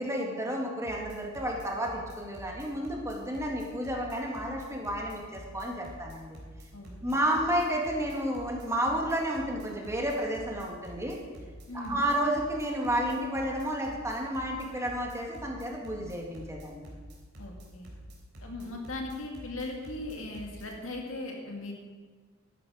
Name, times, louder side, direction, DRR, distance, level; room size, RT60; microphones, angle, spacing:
voice 1, 0.0-6.4 7.0-11.2 11.7-16.8, equal, 15° right, -1 dB, 2.0 m, -31 dB
sound 1, 0.8-20.7, equal, 55° right, 3.6 m, -47 dB
voice 2, 6.7-7.2 11.7-12.0 17.4-17.9 18.4-21.7, left 2 dB, 70° left, 1 dB, 2.2 m, -38 dB
12.5 x 10.5 x 4.9 m, 1.4 s
head